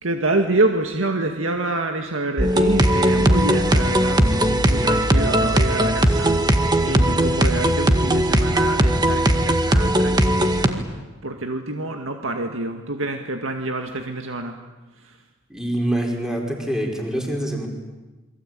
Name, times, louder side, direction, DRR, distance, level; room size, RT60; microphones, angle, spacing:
voice 1, 0.0-10.9 11.2-14.6 15.0-15.2, right 2 dB, 85° right, 4 dB, 2.0 m, -27 dB
sound 1, 2.4-10.7, right 1 dB, 20° right, 1.8 m, -18 dB
voice 2, 6.8-7.2 15.5-17.7, right 1 dB, 5° right, 0 dB, 5.1 m, -26 dB
28.5 x 23.0 x 9.0 m, 1.2 s
head